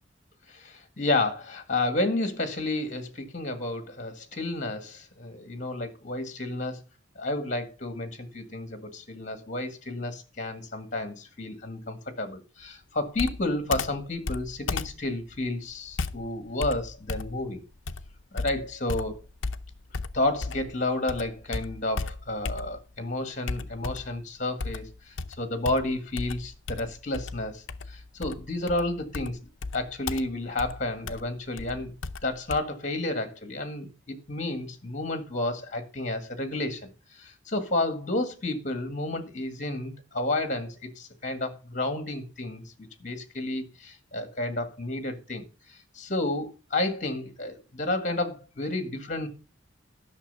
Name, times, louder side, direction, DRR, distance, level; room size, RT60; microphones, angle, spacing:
voice 1, 0.5-6.8 7.2-17.6 18.3-19.2 20.1-29.4 29.7-31.9 32.2-49.3, left 2 dB, 40° left, 1.8 m, -31 dB
Computer keyboard, 13.2-20.8 21.1-23.0 23.5-24.2 24.6-32.6, left 4 dB, 70° left, 0.7 m, -35 dB
11.5 x 6.5 x 5.5 m
head